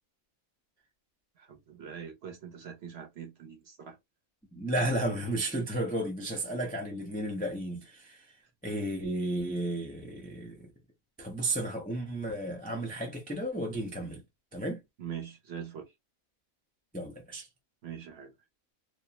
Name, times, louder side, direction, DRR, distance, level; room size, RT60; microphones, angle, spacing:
voice 1, 1.4-4.0 15.0-15.9 17.8-18.3, right 8 dB, 55° right, 0.9 m, -43 dB
voice 2, 4.5-8.3 8.6-10.7 11.2-14.2 14.5-14.8 16.9-17.5, right 1 dB, 10° left, 0.4 m, -33 dB
2.5 x 2.2 x 2.8 m
omnidirectional pair, 1.4 m